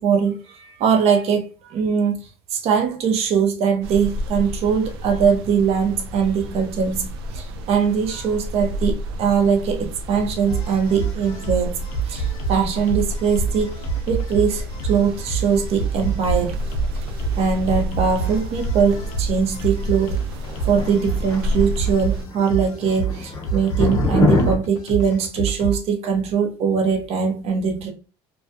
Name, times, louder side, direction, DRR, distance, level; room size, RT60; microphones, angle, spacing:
voice 1, 0.0-2.2 2.5-13.8 14.1-16.6 17.4-20.2 20.6-27.9, right 6 dB, 50° right, 0.7 m, -21 dB
sound 1, 3.8-22.2, left 1 dB, 85° right, 0.4 m, -30 dB
sound 2, 10.5-25.8, right 5 dB, 70° left, 0.6 m, -28 dB
sound 3, 20.4-21.9 22.2-22.5 22.8-24.6, left 2 dB, 30° left, 0.7 m, -23 dB
2.3 x 2.3 x 2.6 m
supercardioid pair, 90°, 13 cm